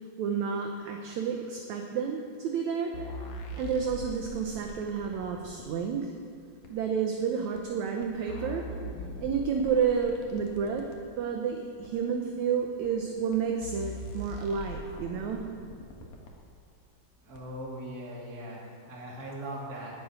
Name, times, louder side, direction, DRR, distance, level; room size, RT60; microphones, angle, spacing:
voice 1, 0.2-3.1 3.5-6.1 6.7-8.7 9.2-10.9 11.2-15.5, right 6 dB, 70° right, 3 dB, 1.9 m, -30 dB
sound 1, 2.9-5.7 6.6-6.7 7.6-7.7 8.0-11.0 11.8-11.9 12.8-12.9 13.3-13.4 13.6-16.3 17.4-17.5, left 1 dB, 60° left, 2.6 m, -41 dB
voice 2, 17.2-20.0, right 1 dB, 30° right, -4 dB, 2.7 m, -40 dB
12.0 x 8.6 x 9.5 m, 2.3 s
omnidirectional pair, 4.1 m